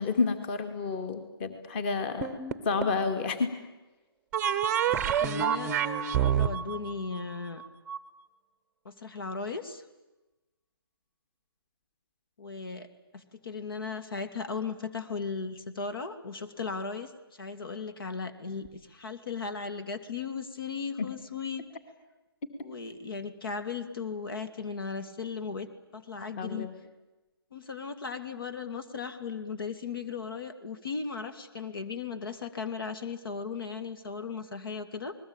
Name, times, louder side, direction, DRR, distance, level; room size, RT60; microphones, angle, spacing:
voice 1, 0.0-2.3 2.6-3.5 21.0-21.1 26.4-26.7, left 4 dB, 25° left, 9 dB, 2.4 m, -30 dB
sound 1, 2.2-3.0 4.3-8.0, right 8 dB, 10° right, 0.9 m, -28 dB
voice 2, 4.8-5.7 6.1-7.6 8.8-9.8 12.4-12.9 13.1-21.6 22.6-26.7 27.5-35.2, left 5 dB, 60° left, 10 dB, 2.4 m, -37 dB
28.5 x 21.0 x 8.9 m, 1.1 s
hypercardioid pair, 160°, 13 cm